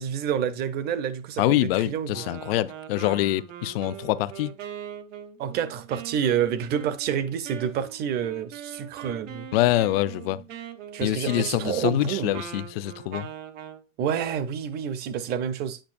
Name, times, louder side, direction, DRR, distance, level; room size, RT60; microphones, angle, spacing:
voice 1, 0.0-1.6 1.9-2.2 5.4-9.5 10.9-12.3 14.0-15.8, right 8 dB, 25° right, 0.6 m, -28 dB
voice 2, 1.4-4.5 9.5-10.5 11.0-13.3, left 15 dB, 50° left, 0.5 m, -25 dB
Wind instrument woodwind instrument, 2.1-13.8, right 9 dB, 80° right, 1.2 m, -41 dB
8.8 x 5.5 x 2.5 m
supercardioid pair, 135°, 38 cm